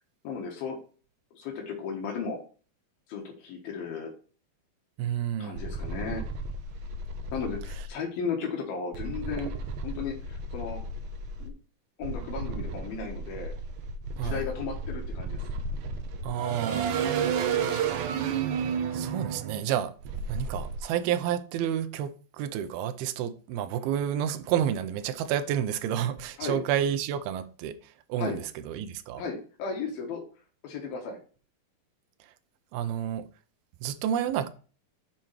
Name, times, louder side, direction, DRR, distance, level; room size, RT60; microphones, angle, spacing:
voice 1, 0.2-0.8 1.3-2.4 3.1-4.1 5.4-6.2 7.3-9.5 9.8-10.8 11.4-11.5 12.0-13.5 14.2-15.4 26.4-26.6 28.2-28.4 29.2-30.2 30.6-31.2, left 5 dB, 75° left, 3.1 m, -35 dB
voice 2, 5.0-5.6 14.2-14.4 16.2-17.0 18.9-19.9 20.3-29.2 32.7-33.3 33.8-34.5, right 10 dB, 85° right, 2.5 m, -30 dB
sound 1, 5.6-7.9 8.9-11.5 12.0-20.8, right 5 dB, 70° right, 1.9 m, -32 dB
7.3 x 5.2 x 4.6 m
omnidirectional pair, 4.4 m